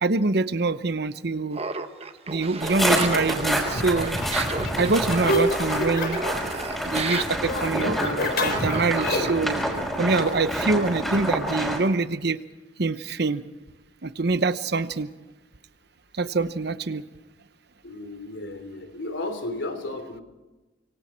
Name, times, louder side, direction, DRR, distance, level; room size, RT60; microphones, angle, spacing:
voice 1, 0.0-1.6 2.3-4.2 4.8-6.2 6.9-9.6 10.0-12.4 12.8-13.4 14.0-15.1 16.1-17.0, right 3 dB, 60° right, 13 dB, 0.9 m, -25 dB
Laughter, 1.5-9.6, right 4 dB, 30° right, 1.2 m, -33 dB
sound 1, 2.6-11.8, equal, ahead, 5.7 m, -28 dB
sound 2, 3.7-6.4 6.7-9.5, left 1 dB, 55° left, 4.3 m, -28 dB
voice 2, 17.8-20.2, left 2 dB, 80° left, 8 dB, 3.3 m, -33 dB
26.0 x 24.5 x 4.5 m, 1.1 s
head